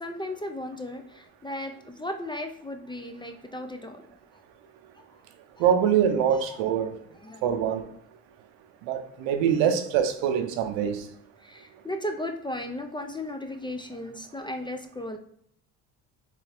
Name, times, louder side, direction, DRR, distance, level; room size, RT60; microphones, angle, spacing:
voice 1, 0.0-4.2 5.6-5.7 6.2-6.7 7.2-7.6 11.4-15.2, left 1 dB, 10° left, 0.4 m, -36 dB
voice 2, 5.6-7.0 7.4-7.8 8.9-11.0, right 8 dB, 85° right, 0.7 m, -24 dB
3.3 x 3.2 x 3.4 m
supercardioid pair, 70°, 43 cm